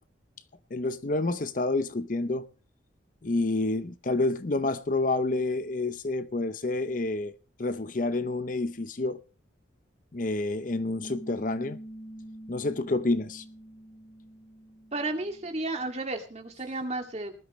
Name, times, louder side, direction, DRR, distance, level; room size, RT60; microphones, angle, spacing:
voice 1, 0.7-2.5 3.2-7.3 7.6-9.2 10.1-11.8 12.5-13.4, left 2 dB, 45° left, 0.7 m, -28 dB
Piano, 11.0-16.1, right 1 dB, 65° left, 7.0 m, -46 dB
voice 2, 14.9-17.3, right 2 dB, 35° right, 2.3 m, -33 dB
19.5 x 12.5 x 3.1 m
head